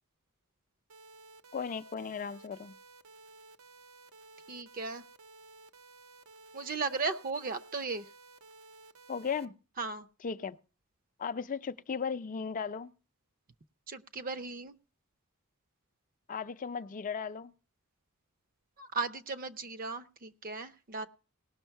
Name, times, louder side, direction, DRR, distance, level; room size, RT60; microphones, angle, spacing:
sound 1, 0.9-9.4, right 3 dB, 85° right, 0.8 m, -55 dB
voice 1, 1.5-2.7 9.1-9.5 10.2-10.6 11.2-12.9 16.3-17.5, left 6 dB, 35° left, 0.4 m, -36 dB
voice 2, 4.5-5.0 6.5-8.1 9.8-10.1 13.9-14.8 18.8-21.1, right 4 dB, 40° right, 0.6 m, -36 dB
18.0 x 6.3 x 4.5 m
head